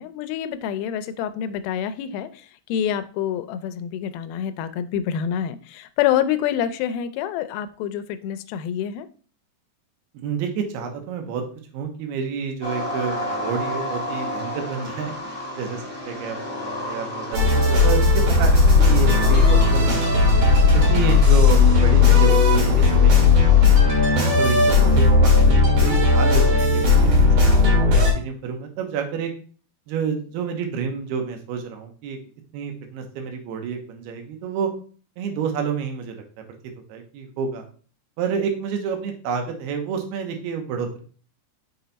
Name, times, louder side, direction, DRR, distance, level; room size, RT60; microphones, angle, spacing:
voice 1, 0.0-9.1, left 9 dB, 80° left, 11 dB, 2.3 m, -27 dB
voice 2, 10.1-11.4 11.7-20.2 20.7-23.9 24.4-29.3 29.9-32.2 32.5-34.7 35.2-36.2 36.9-37.7 38.2-41.0, right 6 dB, 80° right, 4 dB, 3.0 m, -29 dB
sound 1, 12.6-23.6, left 1 dB, 20° left, 0.6 m, -33 dB
sound 2, 17.3-28.1, left 4 dB, 50° right, 3.0 m, -16 dB
6.5 x 4.4 x 4.0 m, 0.41 s
omnidirectional pair, 4.6 m